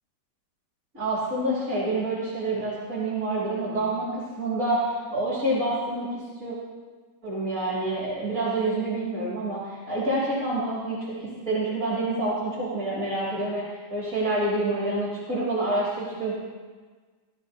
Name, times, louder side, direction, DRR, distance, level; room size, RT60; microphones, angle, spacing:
voice 1, 0.9-6.6 7.2-13.6 13.9-16.4, right 2 dB, 40° right, -6 dB, 3.3 m, -27 dB
17.0 x 11.5 x 4.0 m, 1.4 s
omnidirectional pair, 2.1 m